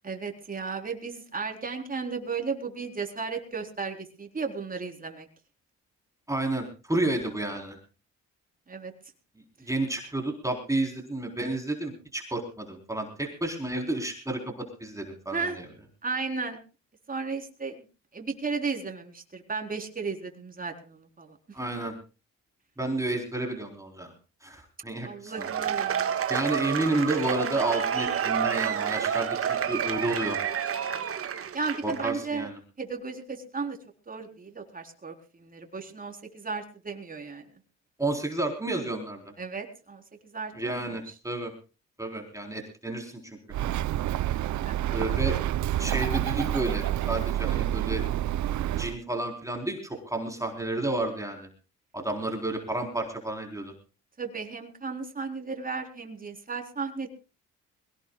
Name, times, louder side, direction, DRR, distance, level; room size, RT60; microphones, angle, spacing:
voice 1, 0.0-5.3 8.7-8.9 15.3-15.6 16.0-16.6 17.1-17.8 18.1-21.4 25.0-26.2 31.5-32.5 32.8-33.8 34.1-37.5 39.4-40.0 40.3-41.0 44.6-45.0 54.2-57.1, right 4 dB, 30° right, 4 dB, 4.0 m, -34 dB
voice 2, 6.3-7.8 9.7-15.6 21.5-21.9 22.8-24.1 24.4-25.5 26.3-30.4 31.8-32.6 38.0-39.2 40.5-41.5 42.0-43.4 44.9-45.4 45.8-48.0 48.8-51.5 51.9-53.7, right 2 dB, 10° right, 2 dB, 4.0 m, -31 dB
Cheering / Applause / Crowd, 25.3-32.1, right 8 dB, 50° right, 1.6 m, -29 dB
Bird, 43.5-48.9, right 13 dB, 70° right, 0.7 m, -28 dB
22.0 x 18.5 x 2.4 m, 0.33 s
cardioid pair, 90°, 30 cm